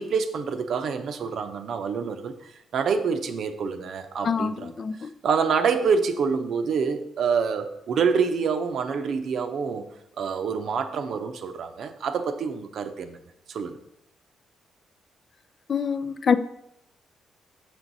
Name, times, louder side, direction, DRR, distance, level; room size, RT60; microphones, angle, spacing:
voice 1, 0.0-4.7 5.2-9.9 10.2-13.2 13.5-13.8, right 5 dB, 65° right, 0.7 m, -26 dB
voice 2, 4.2-5.1 15.7-16.4, left 6 dB, 45° left, 0.4 m, -25 dB
6.5 x 6.2 x 4.0 m
cardioid pair, 110°, 0 cm